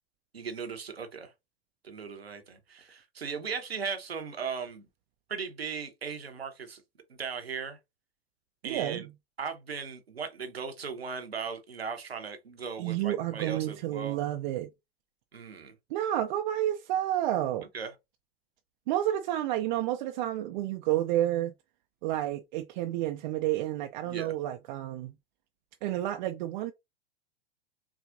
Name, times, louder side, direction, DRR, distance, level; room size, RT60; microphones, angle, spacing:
voice 1, 0.3-1.3 1.8-4.9 5.3-6.8 7.1-7.8 8.6-9.1 9.4-14.2 15.3-15.7 17.7-17.9 24.0-24.4, right 5 dB, 90° right, 0.9 m, -37 dB
voice 2, 8.6-9.0 12.8-14.7 15.9-17.7 18.9-21.5 22.0-25.1 25.8-26.7, right 13 dB, 50° right, 0.5 m, -30 dB
4.7 x 2.4 x 2.5 m
hypercardioid pair, 95°, 30 cm